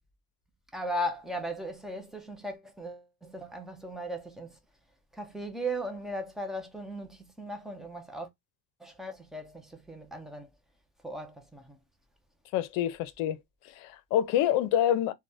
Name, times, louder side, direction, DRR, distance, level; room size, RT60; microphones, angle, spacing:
voice 1, 0.7-4.6 5.1-8.3 8.8-10.5 11.0-11.8, equal, ahead, 0.4 m, -37 dB
voice 2, 12.5-13.4 13.8-15.1, left 11 dB, 65° left, 0.6 m, -26 dB
3.4 x 2.2 x 2.6 m
cardioid pair, 145°, 36 cm